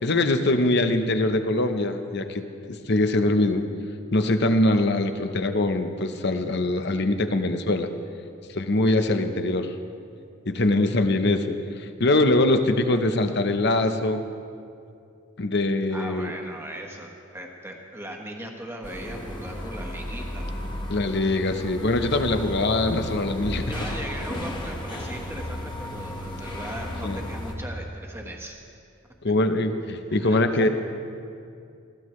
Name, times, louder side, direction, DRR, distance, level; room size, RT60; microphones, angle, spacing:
voice 1, 0.0-3.6 4.1-7.9 8.5-9.7 10.5-14.3 15.4-16.3 20.9-23.9 27.0-27.2 29.2-30.7, left 2 dB, 50° left, 8 dB, 0.8 m, -23 dB
voice 2, 15.9-20.4 23.7-28.6 30.2-30.7, right 1 dB, 10° right, 1 dB, 1.4 m, -38 dB
sound 1, 18.8-27.5, left 1 dB, 20° left, 1.3 m, -34 dB
20.5 x 15.0 x 3.2 m, 2.5 s
head